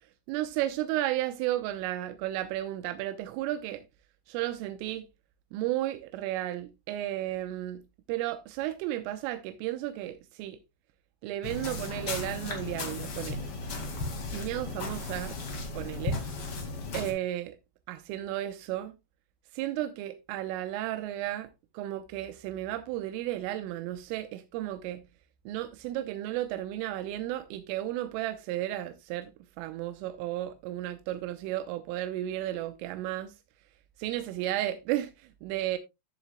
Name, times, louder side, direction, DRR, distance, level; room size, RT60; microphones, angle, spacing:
voice 1, 0.3-3.8 4.3-5.1 5.5-7.8 8.1-10.6 11.2-13.5 14.3-15.4 15.8-16.2 16.9-17.6 17.9-18.9 19.5-21.5 21.7-25.0 25.5-29.3 29.6-33.3 34.0-35.8, right 14 dB, 90° right, 3.3 m, -33 dB
sound 1, 11.4-17.1, left 3 dB, 50° left, 1.6 m, -35 dB
14.0 x 7.3 x 2.2 m
omnidirectional pair, 5.7 m